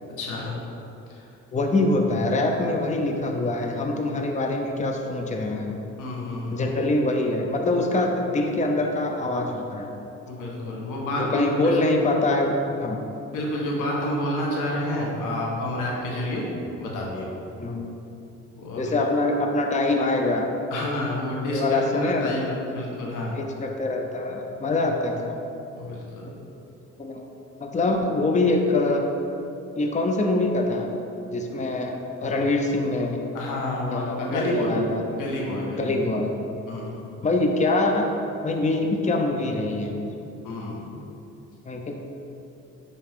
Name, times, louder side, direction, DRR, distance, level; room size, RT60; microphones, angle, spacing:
voice 1, 0.2-0.6 1.1-1.3 6.0-6.8 10.3-11.8 12.9-16.5 16.8-17.4 18.6-18.9 20.7-23.4 25.7-26.3 33.3-34.7 35.1-35.9 36.7-37.1 40.4-41.0, left 1 dB, 90° left, -3 dB, 1.5 m, -29 dB
voice 2, 1.5-5.8 6.5-10.0 11.2-13.1 17.6-17.9 18.8-20.5 21.4-22.4 23.3-25.4 27.0-27.2 27.6-29.1 29.8-30.9 31.3-33.2 33.9-35.0 35.8-36.3 37.2-38.1 38.4-40.0 41.7-41.9, left 2 dB, 25° left, 3 dB, 0.7 m, -24 dB
10.5 x 4.3 x 3.7 m, 2.8 s
cardioid pair, 90°, 30 cm